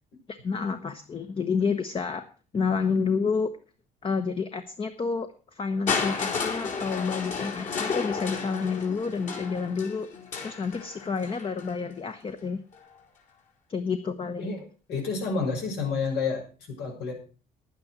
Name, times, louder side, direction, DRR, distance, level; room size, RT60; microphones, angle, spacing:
voice 1, 0.3-2.3 2.5-3.5 4.0-10.1 10.4-12.6 13.7-14.5, left 5 dB, 30° left, 8 dB, 1.1 m, -29 dB
Crushing, 5.9-11.8 12.7-12.8, left 5 dB, 50° left, 4.2 m, -32 dB
voice 2, 14.9-17.1, left 4 dB, 80° left, 1 dB, 6.3 m, -29 dB
11.0 x 9.5 x 6.2 m, 0.36 s
cardioid pair, 110°, 17 cm